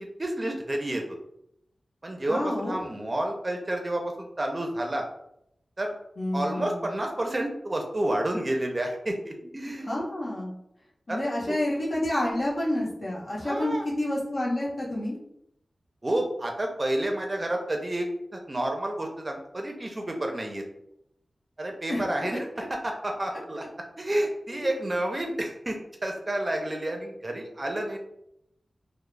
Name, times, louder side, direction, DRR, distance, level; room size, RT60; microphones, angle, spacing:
voice 1, 0.2-1.0 2.0-5.1 5.8-6.0 6.3-10.0 11.1-11.2 11.5-11.6 13.4-13.8 16.0-18.1 18.3-20.6 21.6-23.6 24.0-28.0, right 1 dB, 35° right, 2 dB, 0.5 m, -30 dB
voice 2, 2.3-2.8 6.2-6.9 9.8-10.5 11.1-15.1 21.9-22.7 24.5-24.7, left 1 dB, 60° left, -4 dB, 0.8 m, -29 dB
2.3 x 2.0 x 3.1 m, 0.77 s
wide cardioid pair, 65°, 0 cm